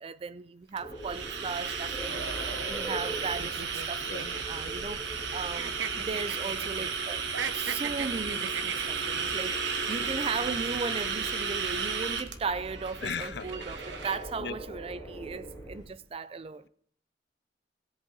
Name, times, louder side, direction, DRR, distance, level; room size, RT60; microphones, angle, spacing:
voice 1, 0.0-7.2 7.5-16.7, right 4 dB, 30° right, 0.4 m, -37 dB
sound 1, 0.8-15.8, right 1 dB, 15° left, 4.2 m, -43 dB
sound 2, 0.8-14.2, right 5 dB, 70° right, 1.2 m, -34 dB
sound 3, 3.4-5.3 5.5-6.9 7.2-9.2, right 7 dB, 85° right, 0.7 m, -37 dB
voice 2, 4.0-4.9 13.0-13.5 14.4-14.5, left 6 dB, 60° left, 0.6 m, -38 dB
17.0 x 8.1 x 3.9 m
head